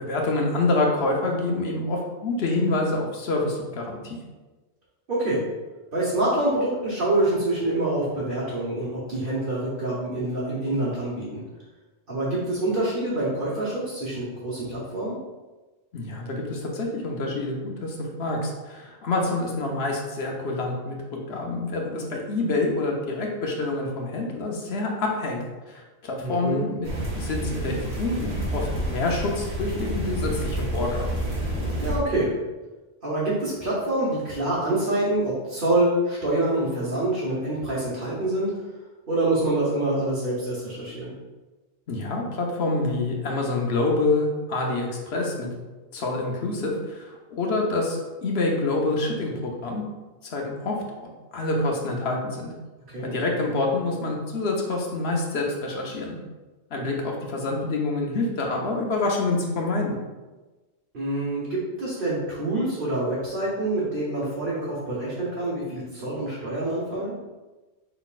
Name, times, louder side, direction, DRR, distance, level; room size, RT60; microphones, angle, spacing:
voice 1, 0.0-4.2 15.9-21.0 21.3-31.2 41.9-45.5 45.9-49.8 50.2-50.8 51.3-52.5 53.0-56.2 56.7-60.0, left 2 dB, 65° left, 0 dB, 1.1 m, -27 dB
voice 2, 5.1-5.4 5.9-11.4 12.1-15.2 26.2-26.6 31.8-32.3 33.0-38.5 39.1-41.1 52.9-53.1 60.9-67.1, right 1 dB, 50° right, -9 dB, 1.3 m, -26 dB
sound 1, 26.8-32.0, right 1 dB, 80° right, 1.4 m, -29 dB
5.5 x 4.0 x 2.4 m, 1.2 s
omnidirectional pair, 1.2 m